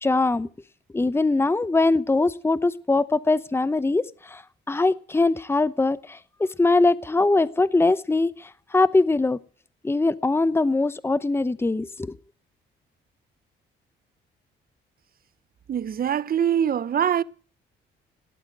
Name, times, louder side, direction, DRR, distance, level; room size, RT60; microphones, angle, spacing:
voice 1, 0.0-0.5 0.9-9.4 9.8-12.2, left 3 dB, 10° left, 0.8 m, -22 dB
voice 2, 15.7-17.2, right 9 dB, 50° right, 0.8 m, -23 dB
18.5 x 9.0 x 7.7 m
cardioid pair, 90°, 20 cm